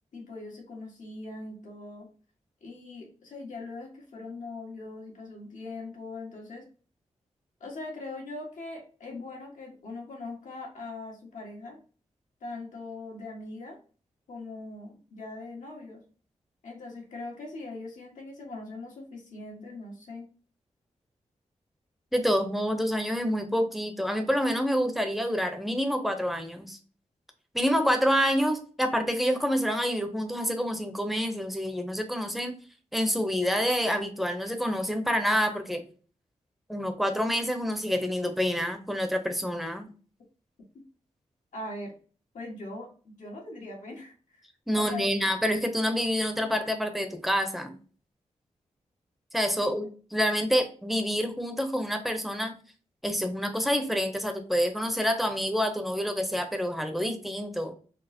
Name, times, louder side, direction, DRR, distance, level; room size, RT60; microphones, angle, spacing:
voice 1, 0.1-2.1 2.6-6.6 7.6-11.8 12.4-13.8 14.3-16.0 16.6-20.3 41.5-41.9 42.3-44.4 44.7-45.1 49.6-49.7, left 2 dB, 85° left, -1 dB, 1.5 m, -41 dB
voice 2, 22.1-26.8 27.5-32.6 32.9-35.8 36.7-39.9 44.7-47.7 49.3-52.6 53.0-57.7, equal, ahead, 5 dB, 0.7 m, -27 dB
4.2 x 2.0 x 4.2 m, 0.39 s
wide cardioid pair, 100°, 13 cm